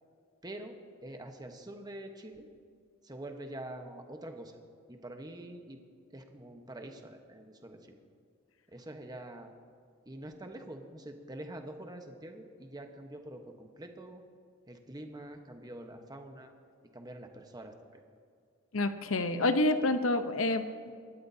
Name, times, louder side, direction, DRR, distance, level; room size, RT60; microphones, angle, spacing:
voice 1, 0.4-0.8 1.0-2.5 3.0-4.6 4.9-5.8 6.1-8.0 8.7-9.5 10.0-14.2 14.7-16.5 16.9-18.0, right 1 dB, 20° right, 5 dB, 1.1 m, -45 dB
voice 2, 18.7-20.9, left 2 dB, 75° left, 9 dB, 0.8 m, -28 dB
27.0 x 12.5 x 2.8 m, 2.2 s
head